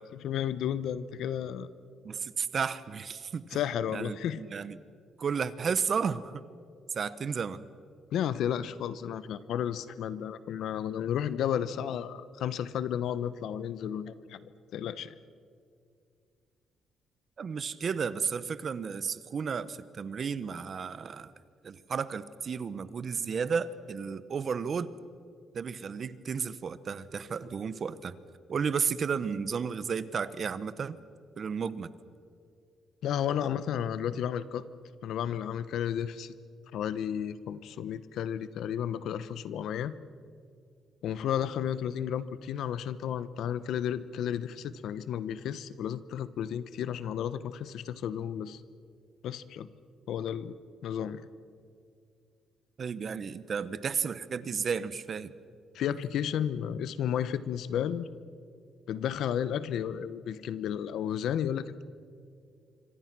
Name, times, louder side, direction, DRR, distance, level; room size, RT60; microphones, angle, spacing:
voice 1, 0.1-1.7 3.5-4.4 8.1-15.2 33.0-34.6 35.0-36.3 36.7-40.0 41.0-48.6 49.2-49.7 50.1-50.5 50.8-51.2 55.7-58.1 58.9-61.8, left 9 dB, 75° left, 15 dB, 0.9 m, -32 dB
voice 2, 2.0-3.6 3.9-4.8 5.2-6.4 6.9-7.6 17.4-21.3 21.6-24.9 25.5-28.1 28.5-31.0 31.4-31.9 52.8-55.3, right 6 dB, 50° right, 15 dB, 1.1 m, -33 dB
26.0 x 25.5 x 6.1 m, 2.3 s
cardioid pair, 90°, 0 cm